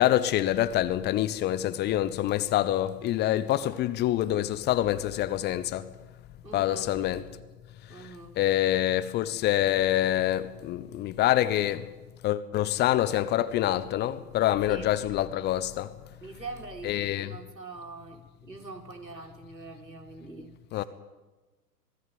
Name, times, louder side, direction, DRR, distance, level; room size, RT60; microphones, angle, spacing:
voice 1, 0.0-5.9 6.5-7.2 8.4-11.9 12.2-15.9 16.8-17.3 20.7-20.8, left 13 dB, 20° left, 1.0 m, -26 dB
voice 2, 6.4-6.9 7.9-8.4 14.7-14.9 16.2-20.9, right 3 dB, 90° right, 4.4 m, -43 dB
26.5 x 19.0 x 9.4 m
figure-of-eight pair, 110°, 49 cm